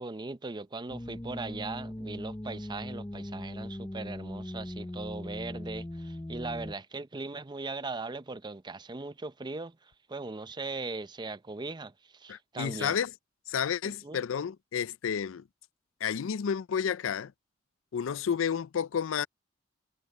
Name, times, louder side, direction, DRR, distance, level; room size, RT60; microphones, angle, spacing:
voice 1, 0.0-13.0 13.8-14.2, right 3 dB, 20° right, 0.6 m, -39 dB
sound 1, 0.9-6.7, left 1 dB, 15° left, 0.7 m, -39 dB
voice 2, 12.3-13.1 13.5-15.4 16.0-17.3 17.9-19.3, left 7 dB, 80° left, 0.4 m, -31 dB
head